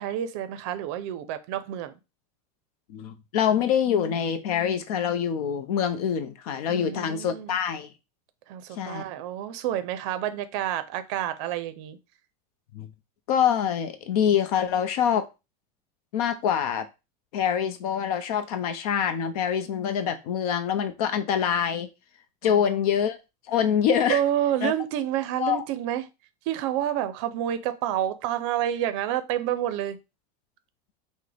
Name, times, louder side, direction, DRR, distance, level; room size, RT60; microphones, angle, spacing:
voice 1, 0.0-1.9 6.7-7.6 8.5-12.0 22.4-22.7 24.1-26.0 26.5-30.0, right 11 dB, 45° right, 0.5 m, -29 dB
voice 2, 2.9-7.9 8.7-9.1 12.7-12.9 13.3-15.2 16.1-16.9 17.3-21.9 22.4-23.2 23.5-24.2 24.6-24.7 25.4-25.6, left 8 dB, 65° left, 0.6 m, -25 dB
5.9 x 2.1 x 3.3 m
supercardioid pair, 180°, 21 cm